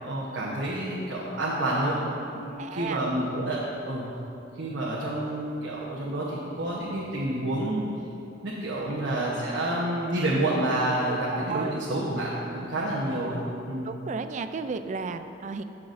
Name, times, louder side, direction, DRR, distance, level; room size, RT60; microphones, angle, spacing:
voice 1, 0.0-2.0 2.3-4.1 4.6-7.9 8.4-13.4 13.7-13.9, right 1 dB, 85° right, -6 dB, 1.1 m, -29 dB
voice 2, 2.6-3.0 11.1-11.2 11.5-11.7 13.8-15.6, right 4 dB, 40° right, 9 dB, 0.4 m, -33 dB
15.5 x 6.0 x 2.6 m, 2.8 s
head